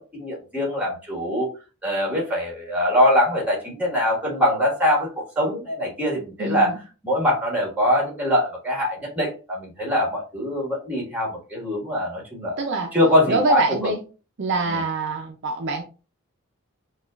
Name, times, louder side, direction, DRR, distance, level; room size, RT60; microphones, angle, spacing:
voice 1, 0.0-1.5 1.8-5.1 5.3-6.7 7.0-12.6 12.9-13.9 14.7-14.8, left 1 dB, 10° right, -1 dB, 1.5 m, -23 dB
voice 2, 6.4-6.8 12.6-12.9 13.3-14.0 14.4-15.8, right 3 dB, 55° right, 3 dB, 0.5 m, -25 dB
5.7 x 2.4 x 2.4 m, 0.33 s
head